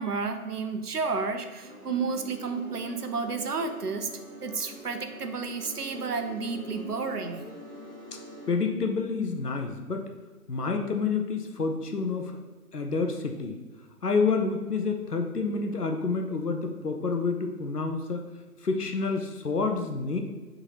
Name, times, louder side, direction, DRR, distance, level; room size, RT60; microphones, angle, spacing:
voice 1, 0.0-4.1 4.4-7.5, right 4 dB, 75° right, 7 dB, 0.6 m, -31 dB
sound 1, 1.6-8.5, left 2 dB, 60° right, 1.4 m, -44 dB
voice 2, 8.5-10.1 10.5-12.4 12.7-13.6 14.0-18.2 18.6-20.2, left 4 dB, 75° left, 4 dB, 0.8 m, -28 dB
4.6 x 3.7 x 2.8 m, 1.2 s
figure-of-eight pair, 170°, 47 cm